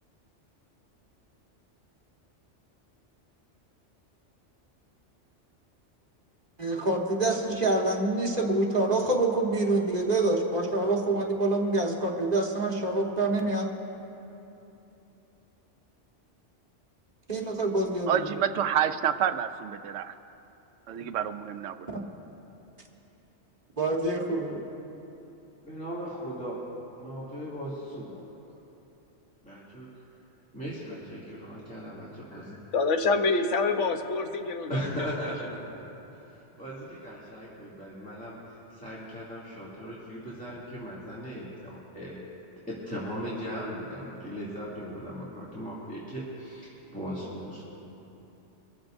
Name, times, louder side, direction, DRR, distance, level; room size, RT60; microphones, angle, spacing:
voice 1, 6.6-13.7 17.3-18.1 21.9-22.0 23.8-24.6, right 2 dB, 35° right, -1 dB, 1.5 m, -26 dB
voice 2, 18.1-20.1 20.9-21.8, right 9 dB, 85° right, 10 dB, 0.9 m, -28 dB
voice 3, 25.6-26.6 27.0-28.2 29.4-29.9 30.5-32.6 34.7-35.6 36.6-38.4 38.7-42.2 42.7-47.6, equal, 5° left, -9 dB, 2.5 m, -38 dB
voice 4, 32.7-35.1, left 3 dB, 80° left, 5 dB, 1.2 m, -26 dB
24.0 x 14.0 x 2.6 m, 3.0 s
omnidirectional pair, 1.2 m